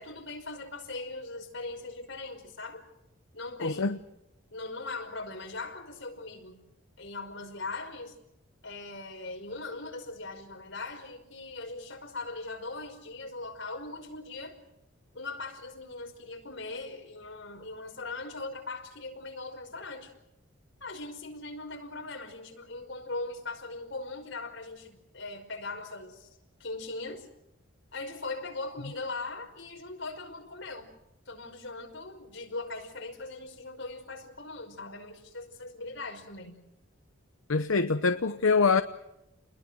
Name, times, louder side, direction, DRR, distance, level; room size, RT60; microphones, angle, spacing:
voice 1, 0.0-2.8 3.3-4.0 4.5-6.6 7.0-8.2 8.6-14.5 15.1-20.1 20.8-26.3 26.6-27.3 27.9-30.9 31.3-36.7, left 3 dB, 65° left, 5.5 m, -40 dB
voice 2, 3.6-4.0 37.5-38.8, left 4 dB, 85° left, 0.9 m, -24 dB
30.0 x 21.5 x 6.4 m
head